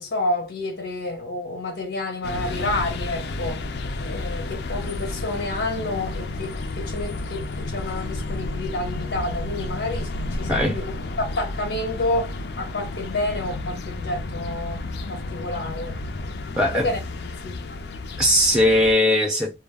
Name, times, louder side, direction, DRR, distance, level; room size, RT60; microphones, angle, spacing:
voice 1, 0.0-3.6 4.0-10.9 11.2-16.0 16.7-17.0 17.4-17.6, left 2 dB, 90° left, 0.8 m, -29 dB
sound 1, 2.2-18.9, left 2 dB, 70° left, 0.4 m, -31 dB
voice 2, 16.6-16.9 18.2-19.6, left 1 dB, 5° right, 0.5 m, -19 dB
2.3 x 2.0 x 3.4 m
head